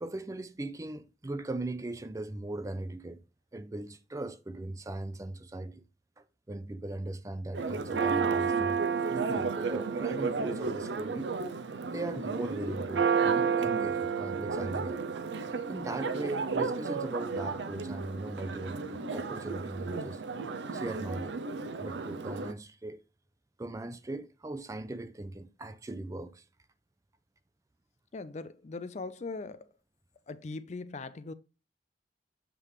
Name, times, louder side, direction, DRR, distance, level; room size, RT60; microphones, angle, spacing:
voice 1, 0.0-3.2 3.5-5.8 6.2-11.3 11.9-15.0 15.7-20.2 20.7-21.4 21.8-23.0 23.6-26.4, right 2 dB, 20° right, 0.4 m, -39 dB
Church bell, 7.5-22.5, right 5 dB, 80° right, 0.6 m, -32 dB
voice 2, 28.1-29.7 30.3-31.3, left 3 dB, 40° left, 0.4 m, -40 dB
7.6 x 3.3 x 4.8 m
head